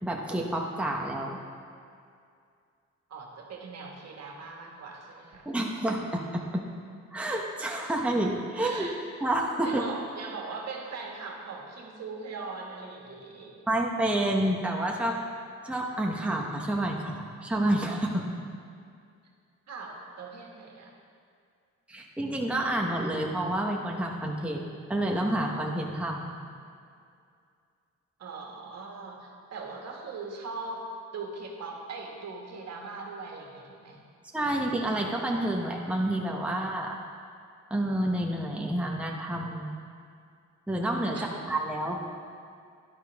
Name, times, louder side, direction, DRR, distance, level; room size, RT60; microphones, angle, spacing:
voice 1, 0.0-1.4 5.4-6.6 7.1-8.9 9.2-9.8 13.7-15.2 15.6-18.3 21.9-26.4 34.3-37.0 37.7-39.8 40.7-41.2 41.5-42.0, right 1 dB, 5° right, -1 dB, 1.1 m, -29 dB
voice 2, 3.1-5.5 8.5-9.0 9.6-13.6 19.7-20.9 28.2-34.0 41.1-41.3, right 3 dB, 60° right, 0 dB, 1.8 m, -40 dB
11.5 x 11.0 x 3.5 m, 2.3 s
cardioid pair, 90°, 30 cm